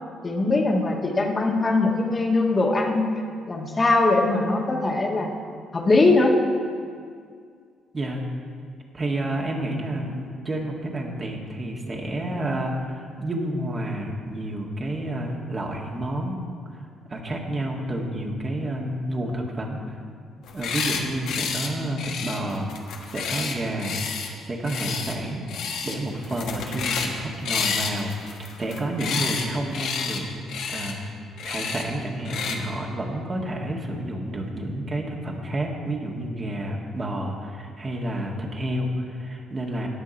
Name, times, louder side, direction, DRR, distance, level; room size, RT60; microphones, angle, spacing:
voice 1, 0.2-3.1 3.5-5.3 5.7-6.4, left 2 dB, 35° left, 0 dB, 1.7 m, -21 dB
voice 2, 8.9-16.4 16.7-20.0 20.5-22.7 23.0-30.3 30.7-31.0 31.4-39.9, right 1 dB, 35° right, -1 dB, 2.0 m, -30 dB
sound 1, 20.4-21.0 21.3-21.7 22.0-24.3 24.6-25.2 25.5-26.0 26.2-27.1 27.5-29.5 29.7-30.2 30.5-30.9 31.4-31.8 32.3-32.6, left 6 dB, 65° left, 1.1 m, -29 dB
18.0 x 6.5 x 4.4 m, 2.1 s
hypercardioid pair, 50°, 0 cm